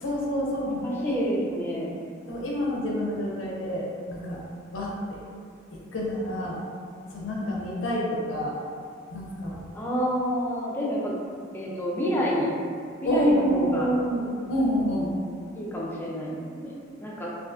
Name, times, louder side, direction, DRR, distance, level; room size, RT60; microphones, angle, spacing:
voice 1, 0.0-1.2 2.3-4.4 4.7-5.2 5.9-6.6 7.1-8.6 9.1-9.6 13.0-15.1, equal, 75° left, -3 dB, 0.5 m, -27 dB
voice 2, 0.8-1.9 9.7-11.1 11.5-12.5 13.0-13.9 15.5-16.7 17.0-17.3, equal, 10° left, -6 dB, 0.4 m, -28 dB
2.4 x 2.3 x 2.3 m, 2.2 s
head